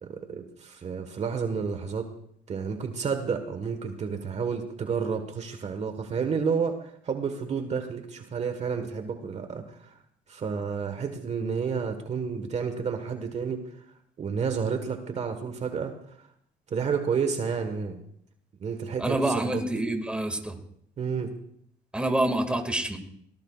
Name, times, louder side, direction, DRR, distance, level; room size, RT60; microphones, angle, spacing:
voice 1, 0.0-2.1 2.5-9.9 10.3-13.6 14.2-15.9 16.7-18.0 18.6-19.7 21.0-21.3, right 6 dB, 40° right, 7 dB, 1.5 m, -30 dB
voice 2, 19.0-20.6 21.9-23.0, right 1 dB, 5° right, 4 dB, 2.1 m, -27 dB
22.5 x 18.5 x 2.4 m, 0.68 s
cardioid pair, 110°, 17 cm